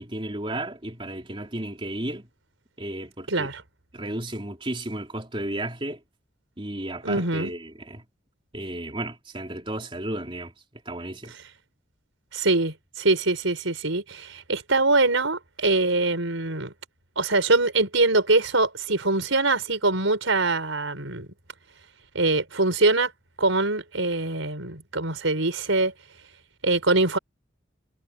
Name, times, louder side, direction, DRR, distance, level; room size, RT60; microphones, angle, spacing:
voice 1, 0.0-2.3 2.8-3.5 3.9-6.0 6.6-8.1 8.5-11.3, right 1 dB, 25° right, 3.6 m, -33 dB
voice 2, 3.3-3.6 7.0-7.5 12.3-16.7 17.2-21.3 22.1-23.1 23.4-25.9 26.6-27.2, right 2 dB, 85° right, 5.5 m, -23 dB
head